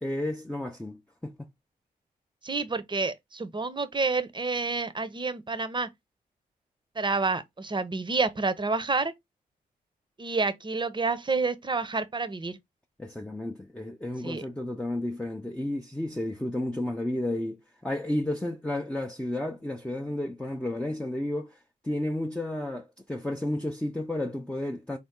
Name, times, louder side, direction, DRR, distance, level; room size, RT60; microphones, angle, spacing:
voice 1, 0.0-1.4 13.0-21.6 21.8-25.0, left 1 dB, 5° left, 0.6 m, -32 dB
voice 2, 2.4-5.9 7.0-9.1 10.2-12.6 14.2-14.4, right 3 dB, 30° right, 0.8 m, -29 dB
4.2 x 2.0 x 3.6 m
cardioid pair, 50°, 17 cm